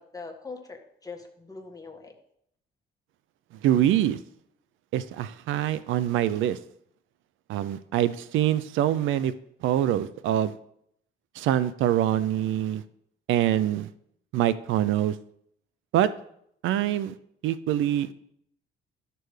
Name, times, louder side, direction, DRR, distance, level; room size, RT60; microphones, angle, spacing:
voice 1, 0.0-2.1, left 4 dB, 20° left, 2 dB, 1.5 m, -42 dB
voice 2, 3.6-4.2 4.9-6.6 7.5-9.3 9.6-10.6 11.3-12.8 13.3-13.9 14.3-15.2 15.9-16.1 16.6-17.2 17.4-18.1, right 11 dB, 85° right, 15 dB, 0.4 m, -24 dB
12.5 x 6.8 x 3.2 m, 0.70 s
cardioid pair, 90°, 20 cm